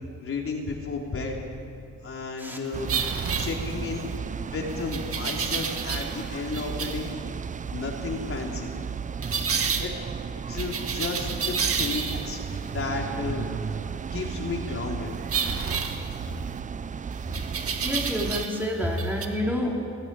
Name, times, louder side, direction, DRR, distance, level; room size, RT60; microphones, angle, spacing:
voice 1, 0.2-1.4 2.0-2.9 3.4-4.1 4.5-7.1 7.7-8.7 9.8-9.9 10.5-12.4 12.7-13.5 14.1-15.1, left 4 dB, 45° left, 0 dB, 3.7 m, -32 dB
sound 1, 2.7-18.5, right 6 dB, 25° right, 0.5 m, -34 dB
sound 2, 2.9-4.1 4.9-6.2 6.5-7.1 9.2-9.9 10.6-12.4 15.3-16.6 17.3-18.7 18.9-19.3, right 6 dB, 50° right, 1.9 m, -30 dB
voice 2, 17.8-19.9, equal, 5° right, -2 dB, 4.6 m, -28 dB
20.0 x 15.5 x 9.0 m, 2.5 s
cardioid pair, 90°, 30 cm